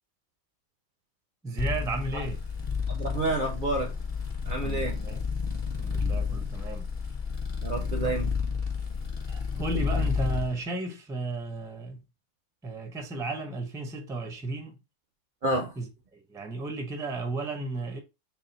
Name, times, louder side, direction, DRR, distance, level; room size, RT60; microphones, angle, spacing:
voice 1, 1.4-2.4 4.6-5.2 5.8-6.9 9.3-12.0 12.6-14.8 15.8-18.0, right 2 dB, 5° right, 0.4 m, -34 dB
sound 1, 1.6-10.5, left 5 dB, 35° left, 0.8 m, -31 dB
voice 2, 2.9-3.9 4.5-5.0 7.6-8.3 15.4-15.7, right 2 dB, 55° right, 0.6 m, -29 dB
4.1 x 2.1 x 3.9 m
omnidirectional pair, 1.3 m